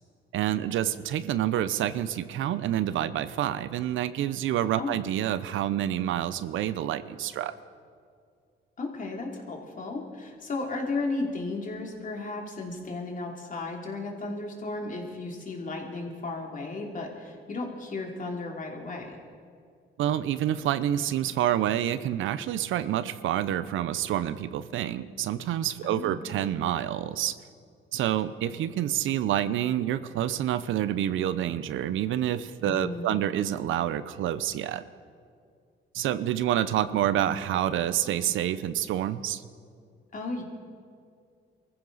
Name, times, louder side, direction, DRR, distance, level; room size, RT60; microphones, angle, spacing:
voice 1, 0.3-7.5 20.0-27.3 27.9-34.8 35.9-39.5, right 11 dB, 80° right, 14 dB, 0.6 m, -28 dB
voice 2, 8.8-19.2 25.8-26.3 32.6-33.2 40.1-40.4, left 3 dB, 40° left, 1 dB, 2.9 m, -34 dB
23.5 x 14.5 x 4.0 m, 2.3 s
cardioid pair, 90°, 20 cm